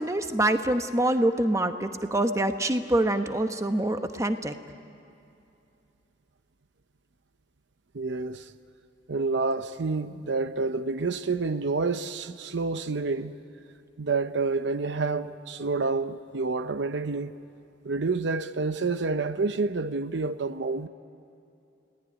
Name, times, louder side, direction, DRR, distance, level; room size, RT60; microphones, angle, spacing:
voice 1, 0.0-4.5, right 1 dB, 15° right, 1.0 m, -25 dB
voice 2, 7.9-8.5 9.1-13.4 14.0-17.3 17.8-20.9, right 3 dB, 70° right, 0.7 m, -28 dB
30.0 x 18.0 x 10.0 m
head